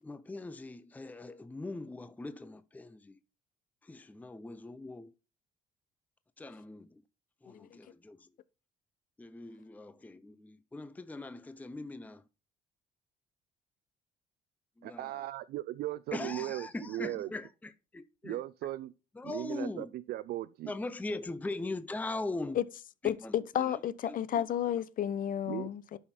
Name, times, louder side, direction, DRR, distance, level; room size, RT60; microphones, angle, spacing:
voice 1, 0.0-3.2 3.8-5.1 6.4-7.0 7.4-8.3 9.2-12.2 14.8-15.3 16.1-18.4 19.2-19.9 20.7-22.6 23.0-23.8 24.0-24.4, left 2 dB, 10° left, 0.6 m, -41 dB
voice 2, 14.8-17.3 18.2-18.9 19.2-20.7 25.5-25.7, right 15 dB, 70° right, 0.5 m, -37 dB
voice 3, 23.0-26.0, left 10 dB, 55° left, 0.8 m, -32 dB
11.0 x 5.8 x 4.4 m
cardioid pair, 110°, 17 cm